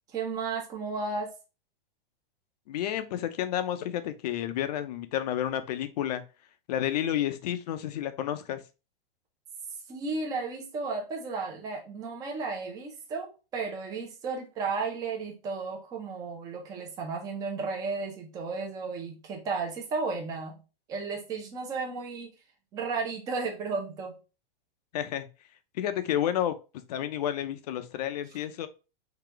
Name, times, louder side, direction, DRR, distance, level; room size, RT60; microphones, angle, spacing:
voice 1, 0.1-1.3 9.9-20.6 20.9-22.3 22.7-24.1, right 4 dB, 10° right, 1 dB, 0.6 m, -34 dB
voice 2, 2.7-6.2 6.7-8.6 24.9-25.3 25.7-28.7, left 11 dB, 45° left, 10 dB, 0.6 m, -31 dB
3.9 x 2.8 x 4.4 m, 0.31 s
supercardioid pair, 170°, 29 cm